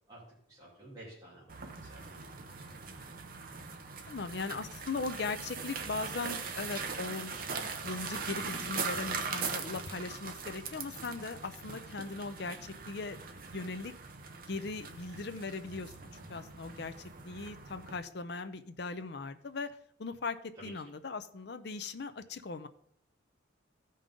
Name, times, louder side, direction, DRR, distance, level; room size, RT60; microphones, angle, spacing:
voice 1, 0.1-2.3 20.6-20.7, right 1 dB, 20° right, -9 dB, 2.9 m, -52 dB
sound 1, 1.5-18.0, right 5 dB, 45° right, 0.8 m, -41 dB
voice 2, 4.1-13.2 13.5-13.9 14.5-15.9 16.3-22.7, left 3 dB, 55° left, 10 dB, 0.6 m, -39 dB
15.0 x 5.3 x 3.8 m, 0.69 s
head